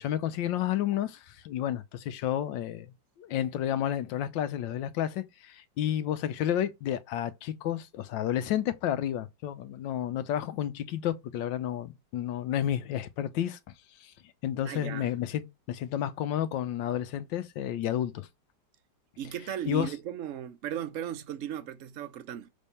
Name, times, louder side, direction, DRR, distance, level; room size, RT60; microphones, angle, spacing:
voice 1, 0.0-13.6 14.0-14.1 14.4-18.3 19.7-19.9, left 11 dB, 90° left, 1.4 m, -31 dB
voice 2, 14.6-15.1 19.2-22.5, right 10 dB, 60° right, 0.8 m, -36 dB
6.1 x 3.5 x 5.5 m
omnidirectional pair, 2.0 m